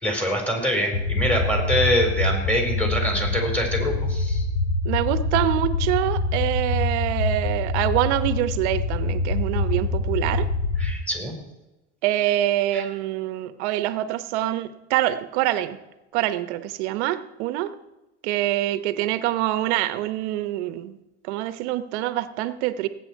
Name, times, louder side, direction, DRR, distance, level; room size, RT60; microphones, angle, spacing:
voice 1, 0.0-4.5 10.8-11.3 12.7-12.8, equal, 5° left, 1 dB, 4.5 m, -24 dB
sound 1, 0.9-10.9, left 2 dB, 80° left, 3.6 m, -25 dB
voice 2, 4.8-10.5 12.0-15.8 16.1-17.7 18.2-21.0 21.2-22.9, right 14 dB, 85° right, 12 dB, 1.0 m, -25 dB
18.0 x 8.8 x 4.6 m, 1.0 s
supercardioid pair, 110°, 34 cm